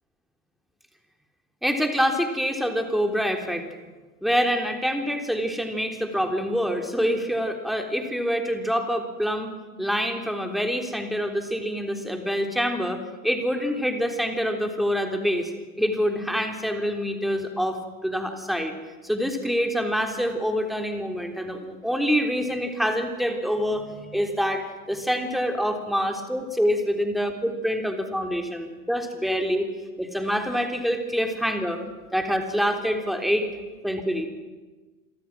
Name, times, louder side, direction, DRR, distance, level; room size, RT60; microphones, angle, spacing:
voice 1, 1.6-3.7 4.2-9.5 9.8-15.5 15.8-18.8 19.0-29.7 30.0-31.8 32.1-33.5 33.8-34.3, equal, ahead, 4 dB, 3.6 m, -26 dB
28.0 x 24.0 x 6.2 m, 1.3 s
figure-of-eight pair, 75°, 44 cm